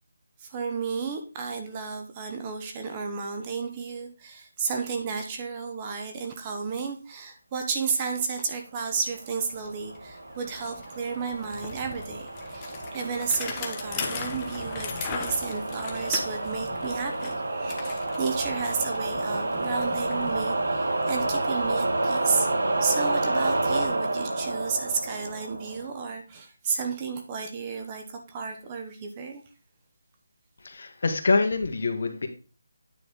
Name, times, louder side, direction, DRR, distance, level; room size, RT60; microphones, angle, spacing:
voice 1, 0.4-22.5 22.8-29.4, right 5 dB, 15° right, 4 dB, 0.9 m, -32 dB
Bicycle, 9.2-9.3 9.5-22.4, left 6 dB, 15° left, 0.9 m, -40 dB
sound 1, 9.6-26.1, right 2 dB, 75° right, 1.6 m, -30 dB
voice 2, 30.6-32.3, left 3 dB, 50° left, 5 dB, 1.6 m, -25 dB
9.4 x 4.1 x 5.0 m, 0.34 s
figure-of-eight pair, 175°, 0 cm